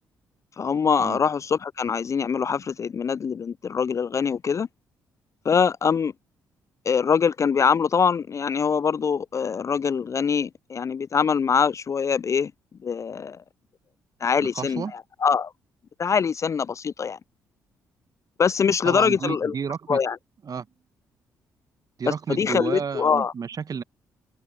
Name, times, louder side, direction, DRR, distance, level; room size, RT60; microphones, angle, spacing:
voice 1, 0.6-4.7 5.5-6.1 6.9-12.5 12.8-13.4 14.2-15.5 16.0-17.2 18.4-19.5 19.9-20.2 22.1-23.3, left 6 dB, 35° left, 0.3 m, -23 dB
voice 2, 14.4-14.9 18.8-20.0 20.4-20.7 22.0-23.8, right 6 dB, 45° right, 1.4 m, -31 dB
hypercardioid pair, 45°, 9 cm